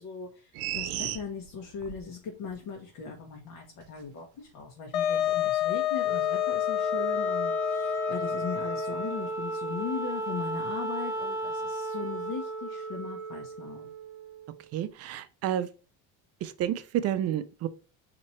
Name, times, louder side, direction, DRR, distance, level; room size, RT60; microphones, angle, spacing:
voice 1, 0.0-13.9, left 6 dB, 60° left, 1.2 m, -39 dB
sound 1, 0.5-2.0 2.4-2.5, right 13 dB, 85° right, 0.7 m, -34 dB
Wind instrument woodwind instrument, 4.9-9.3, left 10 dB, 85° left, 0.6 m, -29 dB
Wind instrument woodwind instrument 2, 6.0-14.6, right 2 dB, 10° right, 1.0 m, -35 dB
voice 2, 14.7-15.7 16.4-17.7, right 11 dB, 40° right, 0.5 m, -30 dB
4.3 x 2.9 x 4.3 m
cardioid pair, 150°, 38 cm